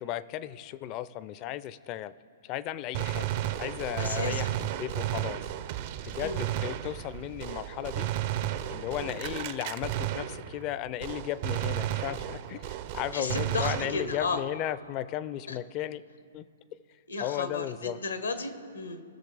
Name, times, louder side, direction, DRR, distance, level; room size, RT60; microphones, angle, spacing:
voice 1, 0.0-2.1 2.4-5.4 6.0-8.1 8.7-16.0 16.3-16.4 17.2-18.0, left 13 dB, 35° left, 17 dB, 0.4 m, -35 dB
Gunshot gunfire, 2.9-10.7 11.0-14.4, right 12 dB, 45° right, 0.5 m, -33 dB
voice 2, 4.0-4.5 6.2-6.5 9.0-9.4 13.1-14.4 15.5-15.6 17.1-19.0, left 3 dB, 85° left, 9 dB, 1.0 m, -34 dB
19.0 x 6.5 x 3.3 m, 2.5 s
hypercardioid pair, 125°, 0 cm